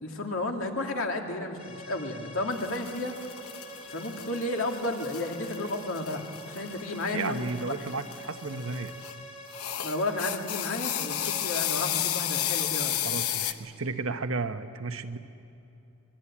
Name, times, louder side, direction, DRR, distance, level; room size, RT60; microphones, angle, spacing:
voice 1, 0.0-3.1 3.9-7.7 9.8-13.1, left 2 dB, 70° left, 2 dB, 2.5 m, -32 dB
sound 1, 1.6-11.4, equal, 35° left, 3.6 m, -46 dB
sound 2, 2.5-9.1 9.5-13.5, left 11 dB, 85° left, 0.9 m, -33 dB
voice 2, 7.1-8.9 13.0-15.2, right 3 dB, 70° right, 8 dB, 1.1 m, -33 dB
25.0 x 21.0 x 8.7 m, 2.8 s
head